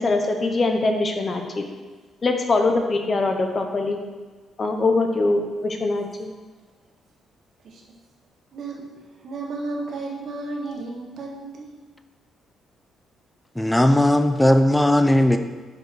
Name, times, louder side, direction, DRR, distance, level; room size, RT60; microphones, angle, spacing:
voice 1, 0.0-1.6 2.2-4.0 4.6-6.3, left 3 dB, 35° left, 4 dB, 1.0 m, -22 dB
voice 2, 8.5-8.9 9.2-11.7, right 3 dB, 60° right, -1 dB, 1.6 m, -33 dB
voice 3, 13.6-15.4, left 1 dB, 5° left, 8 dB, 0.6 m, -17 dB
5.4 x 5.1 x 6.0 m, 1.5 s
cardioid pair, 90°, 0 cm